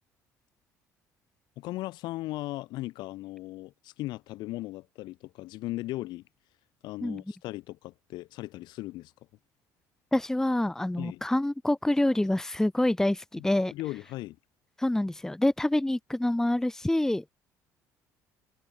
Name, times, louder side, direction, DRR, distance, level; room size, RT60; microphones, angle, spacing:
voice 1, 1.6-6.2 6.8-9.1 11.0-11.2 13.4-14.4, left 18 dB, 70° left, 1.7 m, -37 dB
voice 2, 10.1-13.7 14.8-17.2, left 1 dB, 5° left, 0.8 m, -26 dB
supercardioid pair, 75°, 8 cm